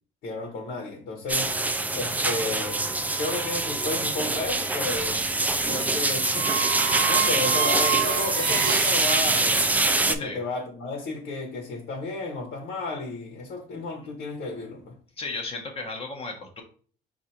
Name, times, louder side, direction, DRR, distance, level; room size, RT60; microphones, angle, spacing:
voice 1, 0.2-1.5 1.9-2.9 3.2-5.2 5.7-14.9, left 3 dB, 70° left, 1.2 m, -33 dB
sound 1, 1.3-10.1, right 2 dB, 10° right, 0.4 m, -25 dB
sound 2, 2.4-10.1, right 11 dB, 65° right, 0.6 m, -32 dB
voice 2, 15.2-16.6, left 3 dB, 35° left, 1.1 m, -34 dB
4.1 x 2.6 x 4.3 m
cardioid pair, 110°, 17 cm